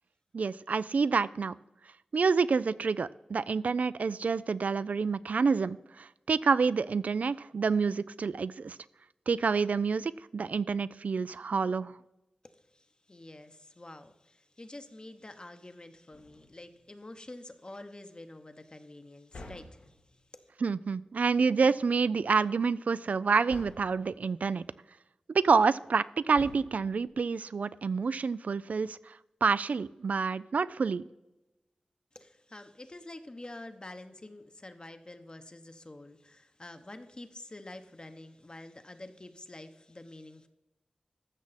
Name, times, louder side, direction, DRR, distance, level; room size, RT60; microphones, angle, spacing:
voice 1, 0.3-1.5 2.1-8.8 9.3-12.0 20.6-24.6 25.3-31.1, right 5 dB, 75° right, 17 dB, 0.3 m, -28 dB
voice 2, 12.4-20.5 32.1-40.5, left 2 dB, 35° left, 8 dB, 0.9 m, -48 dB
sound 1, 16.1-16.8 19.3-20.2 23.5-24.1 26.3-27.2, left 2 dB, 80° left, 1.4 m, -48 dB
14.5 x 6.3 x 4.1 m, 0.98 s
cardioid pair, 50°, 3 cm